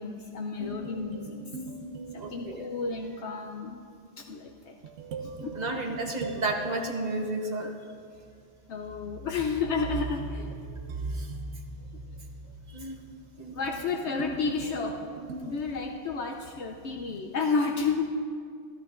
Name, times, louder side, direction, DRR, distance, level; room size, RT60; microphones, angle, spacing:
voice 1, 0.0-1.4 2.1-3.8 4.2-4.8 5.2-5.6 8.7-10.5 13.5-15.0 15.4-18.1, left 4 dB, 70° left, 3 dB, 0.9 m, -31 dB
sound 1, 0.6-3.2 4.8-7.8 9.2-16.6, right 3 dB, 70° right, 0.9 m, -40 dB
voice 2, 2.1-2.7 5.5-7.7 11.1-11.3 12.7-13.0 13.4-13.5, right 2 dB, 40° right, 1 dB, 1.0 m, -32 dB
14.0 x 13.5 x 2.5 m, 2.2 s
omnidirectional pair, 1.3 m